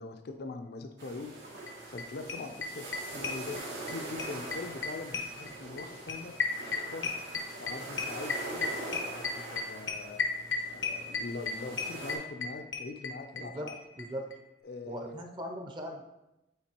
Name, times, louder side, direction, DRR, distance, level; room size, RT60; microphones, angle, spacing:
voice 1, 0.0-1.3 1.9-7.0 7.6-10.2 10.6-13.8 14.6-15.2, left 3 dB, 60° left, 6 dB, 0.4 m, -43 dB
sound 1, 1.0-12.2, right 2 dB, 75° right, 2.3 m, -43 dB
sound 2, 1.7-1.8 2.0-2.1 2.3-3.9 4.2-13.4 13.7-13.8 14.0-14.1 14.3-14.4, left 5 dB, 90° left, 0.8 m, -33 dB
voice 2, 13.3-13.7 14.0-14.2 14.9-16.0, equal, 25° right, 2 dB, 0.6 m, -39 dB
8.7 x 4.1 x 2.9 m, 0.94 s
head